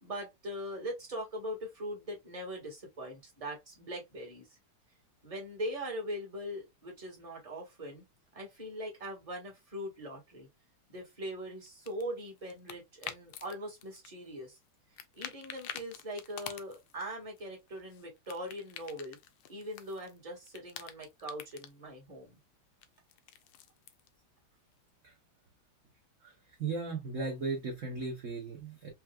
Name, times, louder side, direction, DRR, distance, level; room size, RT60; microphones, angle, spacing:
voice 1, 0.0-4.6 5.2-8.0 8.3-10.5 10.9-14.6 15.2-19.2 19.5-22.4, equal, 20° right, 1.5 m, -41 dB
sound 1, 11.7-13.5 13.8-14.7 15.0-17.0 17.4-20.2 20.4-21.7 22.8-24.1, left 10 dB, 80° left, 1.5 m, -47 dB
voice 2, 26.6-28.9, right 4 dB, 50° right, 1.0 m, -36 dB
4.7 x 3.1 x 2.3 m
omnidirectional pair, 2.4 m